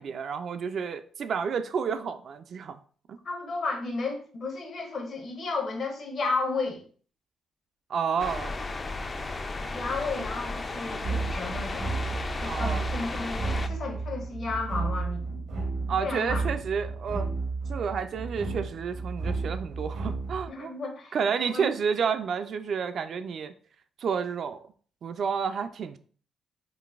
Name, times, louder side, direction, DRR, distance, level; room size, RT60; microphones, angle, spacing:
voice 1, 0.0-2.8 3.1-3.2 7.9-8.6 10.2-10.3 12.4-12.9 15.9-17.4 17.7-20.7 21.1-23.5 24.0-24.7 25.0-26.0, right 6 dB, 60° right, 10 dB, 0.3 m, -30 dB
voice 2, 3.2-6.8 9.7-12.0 12.4-15.4 15.8-16.4 20.5-21.2 21.4-21.7, left 3 dB, 55° left, 2 dB, 0.9 m, -33 dB
sound 1, 8.2-13.7, left 3 dB, 30° left, 0.3 m, -34 dB
sound 2, 11.0-20.5, right 3 dB, 80° right, 0.8 m, -32 dB
3.8 x 2.5 x 2.4 m, 0.43 s
cardioid pair, 95°, 0 cm